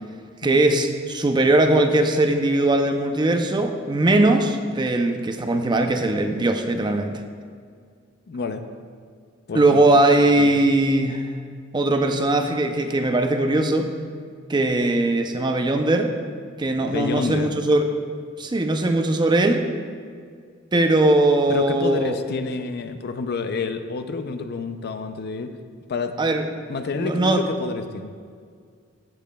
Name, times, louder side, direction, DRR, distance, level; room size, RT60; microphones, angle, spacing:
voice 1, 0.4-7.2 9.5-11.3 11.7-13.9 14.5-16.1 16.6-17.9 18.4-19.6 20.7-22.2 26.2-26.4 27.0-27.4, right 2 dB, 20° right, 6 dB, 0.5 m, -20 dB
voice 2, 8.3-8.6 9.5-9.8 10.4-10.6 16.8-17.6 21.5-25.5 25.9-26.2 26.7-28.1, left 4 dB, 55° left, 8 dB, 0.4 m, -29 dB
13.5 x 7.1 x 2.2 m, 2.1 s
head